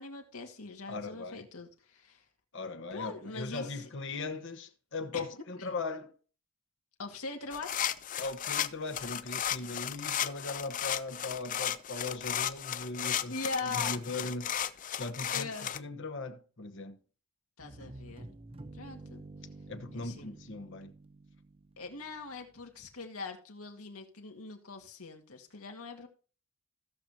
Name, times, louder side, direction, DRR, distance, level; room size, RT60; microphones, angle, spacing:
voice 1, 0.0-2.2 2.9-3.9 5.1-5.3 5.6-5.7 7.0-7.7 13.3-14.0 15.3-15.7 17.6-18.4 18.7-19.2 19.9-20.3 21.8-26.1, left 3 dB, 85° left, 2.1 m, -41 dB
voice 2, 0.9-1.5 2.5-6.1 8.2-13.3 13.6-14.5 15.0-17.0 19.7-20.9, left 3 dB, 55° left, 1.1 m, -39 dB
sound 1, 7.5-15.8, left 10 dB, 35° left, 0.5 m, -34 dB
sound 2, 17.6-22.4, right 2 dB, 25° right, 0.7 m, -50 dB
16.5 x 6.6 x 2.8 m
head